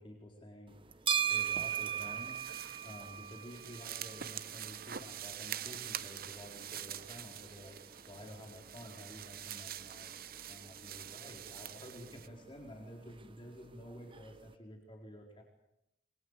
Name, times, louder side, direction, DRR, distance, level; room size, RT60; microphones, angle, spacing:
voice 1, 0.0-7.8 8.1-10.1 10.5-15.4, equal, 30° left, 1 dB, 4.4 m, -51 dB
sound 1, 0.7-14.5, right 8 dB, 30° right, 1.1 m, -42 dB
sound 2, 1.3-12.3, right 10 dB, 55° right, 1.0 m, -46 dB
27.0 x 23.5 x 8.3 m, 0.84 s
head